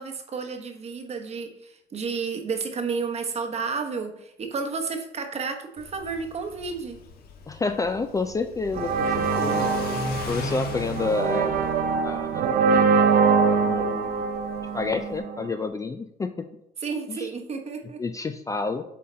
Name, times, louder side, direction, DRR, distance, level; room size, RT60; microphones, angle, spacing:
voice 1, 0.0-7.0 16.8-18.0, right 5 dB, 40° right, 6 dB, 1.0 m, -31 dB
Car / Accelerating revving vroom, 5.8-15.2, left 2 dB, 65° left, 1.1 m, -37 dB
voice 2, 7.5-9.7 10.3-11.6 12.0-12.8 13.6-14.3 14.7-16.5 17.1-17.3 18.0-18.8, left 4 dB, 20° left, 8 dB, 0.4 m, -29 dB
sound 1, 8.7-15.5, right 5 dB, 60° right, 0.7 m, -23 dB
7.5 x 3.9 x 4.3 m, 0.81 s
cardioid pair, 110°, 17 cm